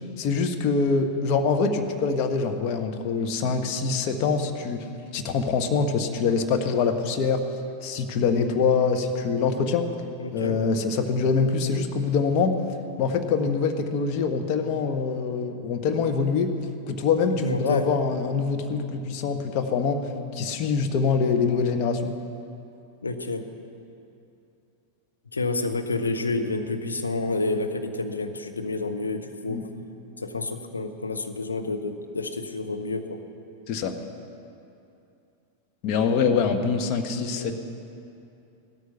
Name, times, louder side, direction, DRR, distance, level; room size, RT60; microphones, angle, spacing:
voice 1, 0.2-4.8 5.1-7.4 7.8-9.9 10.3-12.5 13.0-16.5 16.9-20.0 20.3-22.1 29.5-29.7 33.7-33.9 35.8-37.5, left 5 dB, 40° left, 5 dB, 1.3 m, -24 dB
voice 2, 10.2-10.6 17.3-17.9 23.0-23.4 25.3-29.6 30.2-33.2 37.3-37.5, left 2 dB, 75° left, 5 dB, 1.0 m, -29 dB
16.5 x 13.0 x 5.8 m, 2.7 s
figure-of-eight pair, 90°, 0 cm